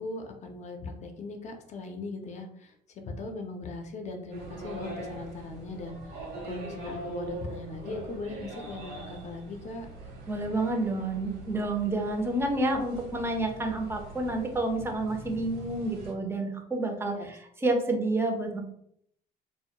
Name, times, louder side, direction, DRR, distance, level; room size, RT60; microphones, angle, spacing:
voice 1, 0.0-9.9 17.1-17.3, left 3 dB, 45° left, 4 dB, 0.5 m, -39 dB
sound 1, 4.3-16.1, right 2 dB, 80° right, 0.8 m, -42 dB
voice 2, 10.3-18.6, right 2 dB, 15° right, 3 dB, 0.4 m, -29 dB
2.2 x 2.0 x 2.8 m, 0.70 s
cardioid pair, 110°, 17 cm